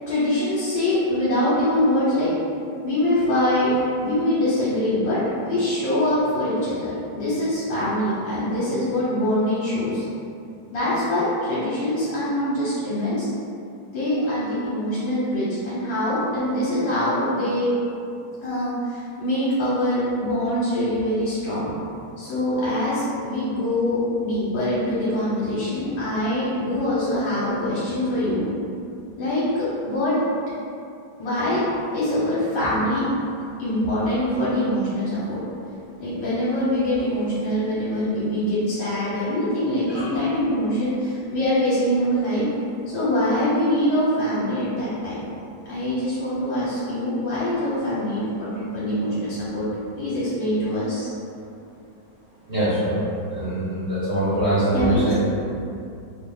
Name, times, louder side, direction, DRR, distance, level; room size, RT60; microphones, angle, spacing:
voice 1, 0.1-2.3 2.8-5.2 5.4-10.0 10.7-13.3 13.9-17.7 18.4-21.7 22.2-28.5 29.2-30.2 31.2-31.6 31.9-33.1 33.6-35.4 36.0-42.4 42.9-45.3 45.7-49.7 50.0-51.1 54.7-55.1, left 1 dB, 70° left, -10 dB, 1.5 m, -24 dB
voice 2, 52.5-53.0 53.3-55.1, right 1 dB, 50° right, -13 dB, 0.9 m, -23 dB
3.2 x 2.3 x 3.7 m, 2.6 s
omnidirectional pair, 2.1 m